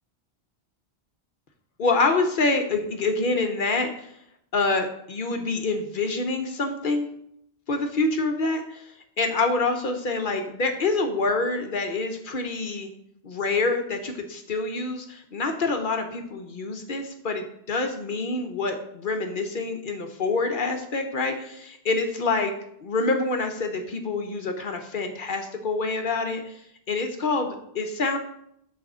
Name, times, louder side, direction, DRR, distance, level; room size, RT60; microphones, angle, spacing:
voice 1, 1.8-4.1 4.5-7.1 7.7-8.8 9.2-12.9 13.2-22.5 22.8-26.5 26.9-28.2, left 3 dB, 55° left, 5 dB, 0.9 m, -26 dB
6.3 x 4.2 x 6.0 m, 0.73 s
omnidirectional pair, 1.1 m